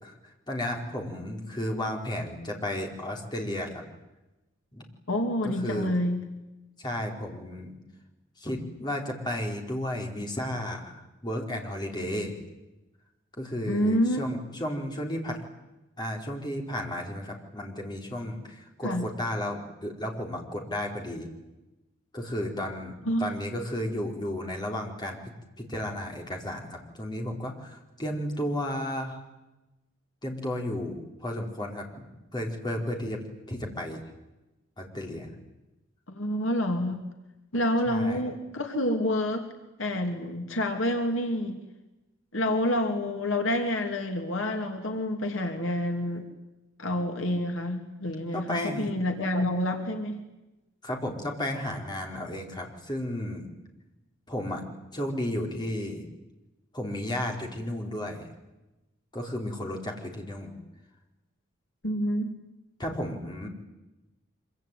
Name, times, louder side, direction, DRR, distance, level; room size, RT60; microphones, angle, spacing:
voice 1, 0.0-3.8 4.7-4.8 5.4-6.0 6.8-7.8 8.4-12.4 13.4-15.4 16.0-21.3 22.1-22.9 23.2-25.2 25.6-29.2 30.2-32.1 32.3-34.0 34.8-35.3 37.9-38.3 48.3-48.9 50.8-53.5 54.3-54.6 54.9-56.0 56.7-58.3 59.1-60.5 62.8-63.5, left 1 dB, 20° left, 1 dB, 4.7 m, -33 dB
voice 2, 5.1-6.2 13.7-14.3 18.8-19.1 23.1-23.4 36.1-37.0 37.5-39.5 39.8-41.6 42.3-46.2 46.8-50.2 61.8-62.3, left 1 dB, 65° left, 4 dB, 2.8 m, -28 dB
25.5 x 24.5 x 9.4 m, 1.0 s
head